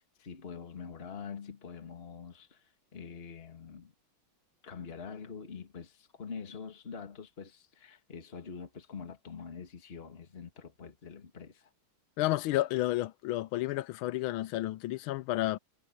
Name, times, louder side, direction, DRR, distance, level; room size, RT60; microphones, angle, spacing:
voice 1, 0.2-3.9 4.6-11.7, left 6 dB, 30° left, 2.0 m, -45 dB
voice 2, 12.2-15.6, left 16 dB, 80° left, 1.4 m, -31 dB
omnidirectional pair, 2.3 m